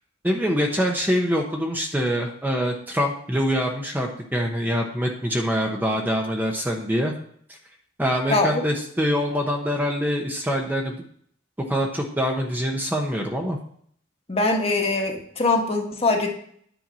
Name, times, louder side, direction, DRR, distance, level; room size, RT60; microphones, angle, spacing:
voice 1, 0.2-7.1 8.0-11.0 11.6-13.6, equal, 10° right, 1 dB, 1.0 m, -24 dB
voice 2, 8.3-8.6 14.3-16.3, left 3 dB, 30° left, 1 dB, 1.5 m, -22 dB
10.0 x 4.6 x 7.5 m, 0.62 s
head